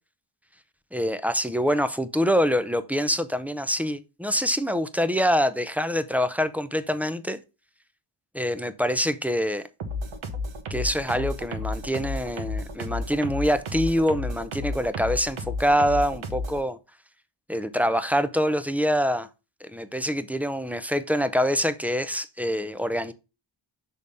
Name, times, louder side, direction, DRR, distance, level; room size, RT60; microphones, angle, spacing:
voice 1, 0.9-7.4 8.3-9.6 10.7-16.8 17.5-19.3 19.6-23.1, equal, 5° right, 0.5 m, -25 dB
sound 1, 9.8-16.6, left 2 dB, 70° right, 1.4 m, -32 dB
6.5 x 3.5 x 5.4 m
cardioid pair, 90°, 49 cm